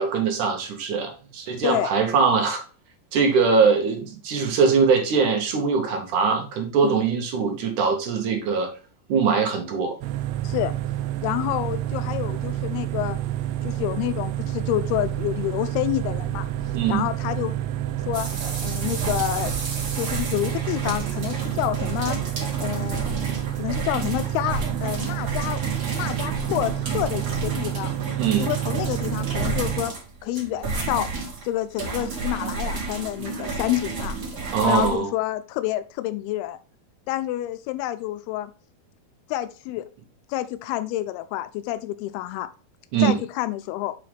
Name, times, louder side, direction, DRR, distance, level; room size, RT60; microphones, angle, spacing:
voice 1, 0.0-2.6 3.1-8.7 9.1-10.0 16.7-17.0 28.2-28.5 34.5-35.1 42.9-43.2, right 5 dB, 65° right, 3 dB, 2.3 m, -22 dB
sound 1, 10.0-29.8, right 13 dB, 80° right, 2.2 m, -29 dB
voice 2, 10.4-10.7 11.2-13.2 13.6-16.5 16.9-17.6 18.1-18.3 18.6-19.5 19.9-22.2 22.6-23.1 23.5-25.6 25.9-27.9 28.4-29.9 30.2-31.1 31.4-34.2 34.6-36.6 37.1-38.5 39.3-39.9 40.3-42.5 43.0-44.0, left 14 dB, 90° left, 11 dB, 2.5 m, -28 dB
sound 2, 18.1-35.0, right 3 dB, 40° right, 1.9 m, -32 dB
7.6 x 4.9 x 3.3 m, 0.37 s
omnidirectional pair, 4.4 m